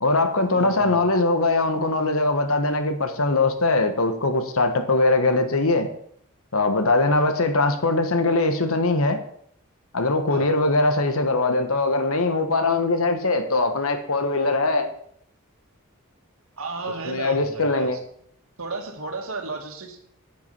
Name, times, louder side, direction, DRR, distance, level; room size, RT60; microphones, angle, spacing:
voice 1, 0.0-5.9 6.5-9.2 9.9-14.9 17.1-18.0, left 2 dB, 75° left, 7 dB, 1.4 m, -21 dB
voice 2, 0.5-1.0 10.3-10.5 16.6-18.0 18.6-20.0, right 3 dB, 75° right, 4 dB, 2.0 m, -33 dB
9.7 x 8.5 x 5.6 m, 0.67 s
head